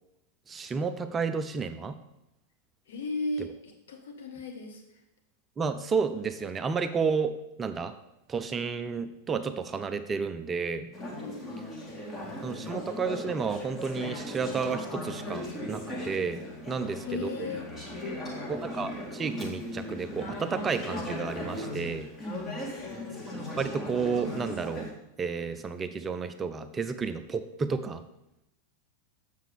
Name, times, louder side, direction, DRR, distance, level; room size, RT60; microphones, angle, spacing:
voice 1, 0.5-1.9 5.6-7.9 8.3-10.9 12.4-17.3 18.5-22.1 23.6-24.9 25.2-28.0, right 5 dB, 20° right, 10 dB, 0.4 m, -31 dB
voice 2, 2.9-4.8 11.2-12.3 16.7-17.7 18.0-18.5 22.6-23.2, left 3 dB, 60° left, 2 dB, 1.4 m, -38 dB
Conversation / Chatter, 10.9-24.9, left 1 dB, 15° left, 1.7 m, -38 dB
7.4 x 6.7 x 3.5 m, 0.86 s
figure-of-eight pair, 90°, 0 cm